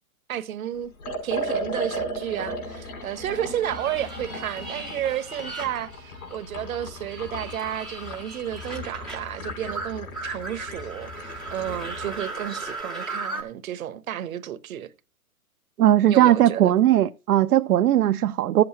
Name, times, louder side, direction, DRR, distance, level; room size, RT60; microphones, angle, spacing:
voice 1, 0.3-14.9 16.1-16.7, right 11 dB, 65° right, 1.0 m, -32 dB
Liquid, 1.0-12.2, equal, 75° left, 4.7 m, -36 dB
sound 1, 3.7-6.4 6.7-13.4, right 3 dB, ahead, 0.4 m, -37 dB
voice 2, 15.8-18.6, right 12 dB, 80° right, 0.6 m, -18 dB
13.5 x 7.8 x 2.8 m
hypercardioid pair, 135°, 45 cm